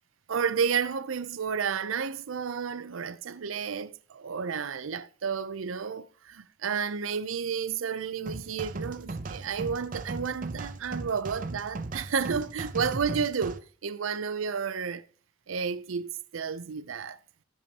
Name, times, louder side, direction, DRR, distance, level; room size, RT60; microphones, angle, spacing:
voice 1, 0.3-15.0 15.5-17.2, right 6 dB, 85° right, 0.5 m, -31 dB
sound 1, 8.3-13.6, right 3 dB, 40° right, 0.6 m, -37 dB
15.5 x 6.8 x 2.9 m
head